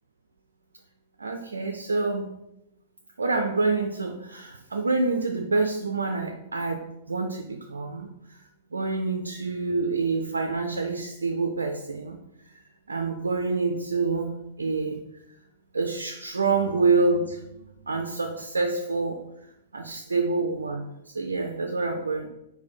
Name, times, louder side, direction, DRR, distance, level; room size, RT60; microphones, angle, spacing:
voice 1, 1.2-2.3 3.2-8.1 8.7-12.2 12.9-15.0 15.7-19.2 19.7-22.3, right 3 dB, 75° right, 4 dB, 0.3 m, -27 dB
4.1 x 2.1 x 4.1 m, 0.85 s
figure-of-eight pair, 100°, 0 cm